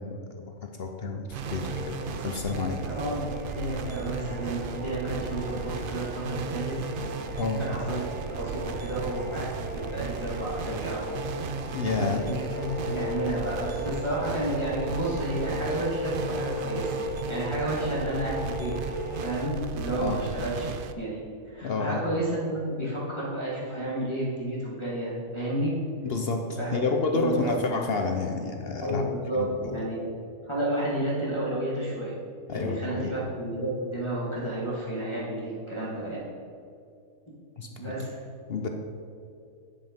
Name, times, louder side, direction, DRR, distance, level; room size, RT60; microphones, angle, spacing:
voice 1, 0.0-1.9 2.2-2.8 7.3-7.7 11.7-12.2 20.0-20.2 21.6-22.0 26.0-29.0 29.4-29.8 32.5-33.2 37.6-37.9 38.5-38.7, left 4 dB, 55° left, 4 dB, 0.7 m, -30 dB
sound 1, 1.3-20.9, right 5 dB, 80° right, 0.4 m, -36 dB
sound 2, 1.4-19.4, left 1 dB, 10° right, 0.6 m, -37 dB
voice 2, 2.8-6.8 7.3-8.0 8.3-11.1 12.0-17.0 17.3-18.8 19.2-20.7 21.0-21.2 21.5-25.8 26.6-26.8 27.1-27.9 28.8-30.1 30.5-32.1 32.5-36.2 37.8-38.2, right 1 dB, 20° left, -8 dB, 1.8 m, -31 dB
10.0 x 5.7 x 5.1 m, 2.5 s
omnidirectional pair, 1.5 m